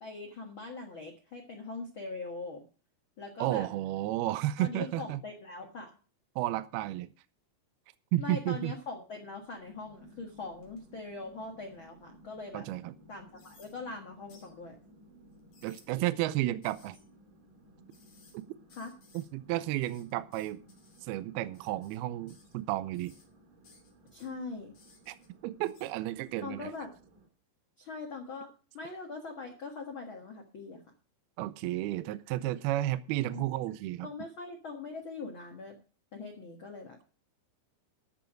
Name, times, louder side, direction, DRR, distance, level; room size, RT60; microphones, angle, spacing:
voice 1, 0.0-2.6 3.2-3.7 4.6-5.9 8.2-12.7 13.1-14.8 18.7-18.9 24.1-24.7 26.4-26.9 27.8-28.5 28.7-30.8 33.3-33.4 34.0-35.7 36.1-37.0, left 3 dB, 85° left, 2 dB, 1.1 m, -42 dB
voice 2, 3.4-5.2 6.4-7.1 8.1-8.8 12.5-12.9 15.6-17.0 18.3-18.5 19.1-20.6 21.0-23.1 25.1-25.2 25.4-26.7 31.4-34.1, right 15 dB, 85° right, 14 dB, 2.2 m, -32 dB
sound 1, 9.4-12.0 12.5-12.6 13.4-13.7 14.3-14.5 15.3-15.9 16.6-17.0 17.9-18.4 18.7-19.3 19.6-21.1 21.5-22.0 22.3-22.6 22.9-23.3 23.6-24.3 24.7-25.3 25.6-25.9, left 4 dB, 45° left, 3.9 m, -62 dB
sound 2, 9.6-27.3, right 1 dB, 65° right, 4.7 m, -59 dB
12.5 x 7.1 x 6.3 m, 0.37 s
omnidirectional pair, 5.2 m